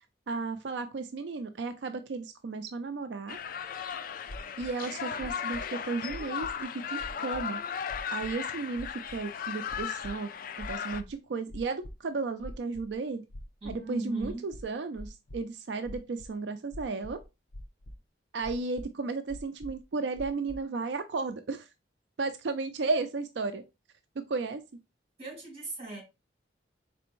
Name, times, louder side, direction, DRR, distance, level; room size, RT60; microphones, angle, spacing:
voice 1, 0.3-3.4 4.6-7.6 8.1-10.3 10.6-13.2 13.7-17.2 18.3-21.7 22.2-23.6 24.3-24.6, right 3 dB, 70° right, 0.4 m, -34 dB
sound 1, 3.3-11.0, left 7 dB, 50° left, 0.4 m, -36 dB
sound 2, 4.3-4.7 5.2-5.6 6.1-6.6 7.0-7.4 7.9-8.3 8.8-9.2 9.7-10.1 10.6-11.1 11.5-12.0 12.4-12.9 13.3-13.7 14.2-15.4 15.8-16.3 16.7-17.2 17.5-18.0 18.4-18.9 19.3-19.8 20.2-20.6, left 1 dB, 75° left, 0.7 m, -43 dB
voice 2, 13.6-14.4 25.2-26.0, right 2 dB, 35° right, 2.5 m, -38 dB
4.2 x 3.4 x 3.0 m
head